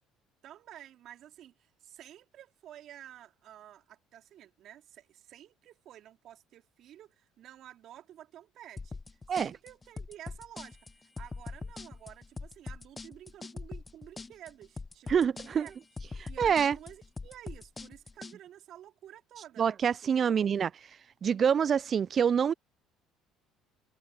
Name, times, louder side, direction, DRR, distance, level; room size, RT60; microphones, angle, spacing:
voice 1, 0.4-15.7 16.3-19.7 20.0-20.4, right 11 dB, 60° right, 3.2 m, -51 dB
sound 1, 8.8-18.4, left 3 dB, 25° left, 0.9 m, -42 dB
voice 2, 15.1-15.7 16.2-16.8 19.6-20.7 21.2-22.5, right 7 dB, 45° right, 0.4 m, -26 dB
hypercardioid pair, 65°, 0 cm